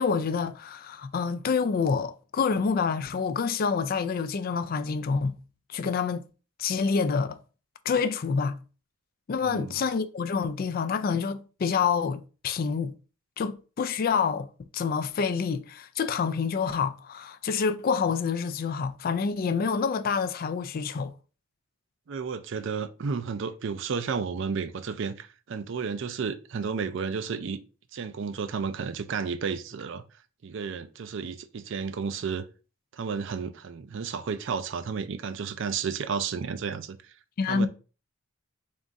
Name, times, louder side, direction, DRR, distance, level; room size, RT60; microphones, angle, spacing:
voice 1, 0.0-5.4 5.7-6.2 6.6-7.4 7.9-8.6 9.3-12.9 13.4-21.1 37.4-37.7, left 5 dB, 45° left, 0.3 m, -27 dB
voice 2, 9.5-9.8 22.1-27.6 27.9-30.0 30.4-32.5 32.9-37.1 37.5-37.7, right 5 dB, 65° right, 0.4 m, -32 dB
3.6 x 2.5 x 4.0 m
head